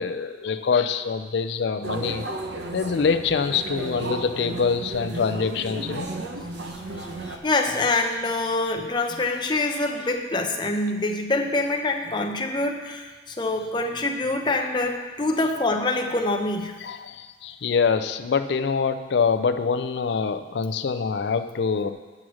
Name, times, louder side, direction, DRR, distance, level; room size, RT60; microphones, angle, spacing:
voice 1, 0.0-2.3 2.7-6.1 9.7-9.8 15.4-15.5 16.8-21.9, left 5 dB, 65° left, 11 dB, 0.4 m, -25 dB
sound 1, 1.8-7.4, right 2 dB, 60° right, 0.8 m, -33 dB
voice 2, 7.0-16.7, left 2 dB, 25° left, 3 dB, 0.7 m, -25 dB
8.6 x 6.2 x 6.2 m, 1.3 s
head